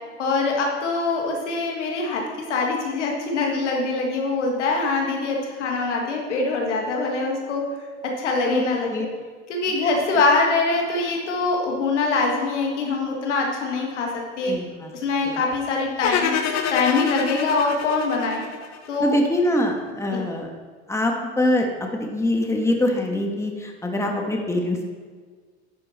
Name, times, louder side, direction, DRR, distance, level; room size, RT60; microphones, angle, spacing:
voice 1, 0.2-2.2 2.5-7.6 8.2-9.0 9.5-14.1 14.4-14.5 15.0-16.4 16.7-18.4 18.9-19.2 20.1-20.2, left 3 dB, 90° left, 0 dB, 1.6 m, -23 dB
voice 2, 14.4-14.9 15.2-15.4 19.0-20.5 20.9-24.8, left 1 dB, 10° left, 2 dB, 1.4 m, -24 dB
sound 1, 16.0-19.2, left 7 dB, 55° left, 1.0 m, -27 dB
11.0 x 5.4 x 4.2 m, 1.6 s
hypercardioid pair, 80°, 35 cm